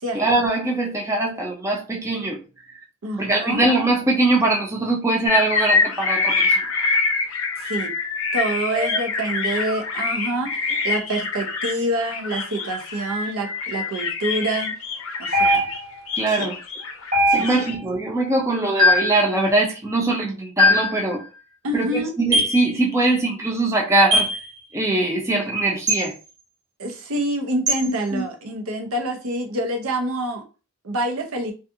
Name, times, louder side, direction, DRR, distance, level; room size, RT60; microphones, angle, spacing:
voice 1, 0.1-2.4 2.7-2.8 3.2-6.6 8.7-9.0 16.2-16.6 17.3-21.2 21.7-24.3 24.7-26.1 27.8-28.2, right 2 dB, 15° right, 0.4 m, -22 dB
voice 2, 3.0-3.6 7.6-7.9 8.3-14.8 15.2-15.7 16.4-16.5 17.3-17.7 21.6-22.1 26.8-30.4 30.8-31.5, right 1 dB, 80° right, 0.7 m, -27 dB
sound 1, 5.3-15.8 16.1-17.8, left 4 dB, 65° left, 0.5 m, -25 dB
sound 2, 15.3-16.0 17.1-17.8 18.8-19.2 20.6-21.0 22.3-22.6 24.1-24.4 25.9-26.1 27.7-27.8, left 1 dB, 40° right, 0.9 m, -19 dB
2.5 x 2.4 x 2.6 m
head